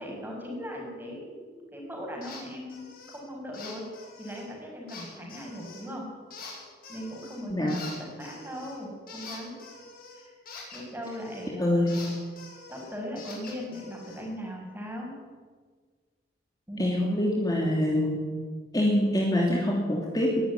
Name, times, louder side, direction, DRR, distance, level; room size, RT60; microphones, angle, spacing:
voice 1, 0.0-3.9 4.2-6.0 6.9-9.6 10.1-10.4 10.7-12.1 12.7-15.1 16.7-16.9, equal, 10° right, -1 dB, 6.1 m, -39 dB
sound 1, 2.2-2.4 2.7-3.2 3.5-4.5 4.9-5.9 6.3-7.4 7.7-11.5 11.9-14.3, left 4 dB, 55° left, 7.2 m, -45 dB
voice 2, 7.5-7.8 11.6-12.1 16.8-18.2 18.7-20.4, left 1 dB, 20° left, -2 dB, 3.0 m, -25 dB
21.0 x 13.0 x 9.6 m, 1.5 s
head